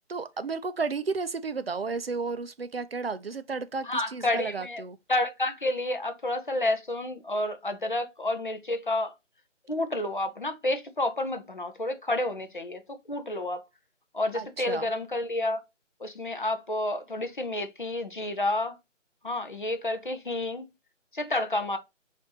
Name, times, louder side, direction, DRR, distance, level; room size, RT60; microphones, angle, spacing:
voice 1, 0.1-5.0 14.3-14.9, right 4 dB, 50° right, 0.4 m, -33 dB
voice 2, 3.8-4.8 5.1-9.1 9.7-13.6 14.1-15.6 16.0-18.8 19.2-20.7 21.1-21.8, left 1 dB, 40° left, 0.5 m, -30 dB
4.3 x 2.6 x 2.8 m
figure-of-eight pair, 155°, 38 cm